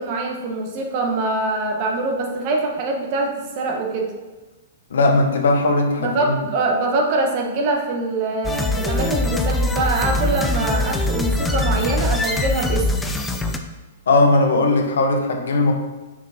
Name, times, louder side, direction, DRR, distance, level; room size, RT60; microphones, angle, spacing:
voice 1, 0.0-4.1 6.0-12.9, right 2 dB, 45° right, 1 dB, 1.8 m, -23 dB
voice 2, 4.9-6.5 14.1-15.7, left 2 dB, 75° left, 3 dB, 1.4 m, -18 dB
sound 1, 8.4-13.6, left 2 dB, 10° left, 0.8 m, -22 dB
6.8 x 6.1 x 4.5 m, 1.2 s
hypercardioid pair, 125°, 0 cm